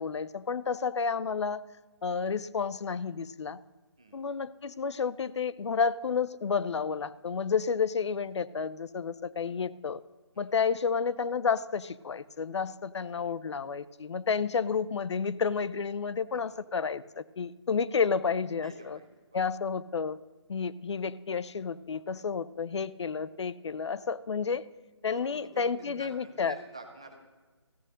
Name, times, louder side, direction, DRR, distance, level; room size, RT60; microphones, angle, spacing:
voice 1, 0.0-1.6 2.0-3.6 4.1-10.0 10.4-19.0 19.3-20.2 20.5-24.6 25.0-26.5, left 5 dB, 75° left, 17 dB, 0.4 m, -31 dB
voice 2, 18.6-19.4 25.1-27.2, right 3 dB, 10° right, 4 dB, 0.4 m, -48 dB
14.0 x 6.3 x 6.4 m, 1.3 s
hypercardioid pair, 170°, 15 cm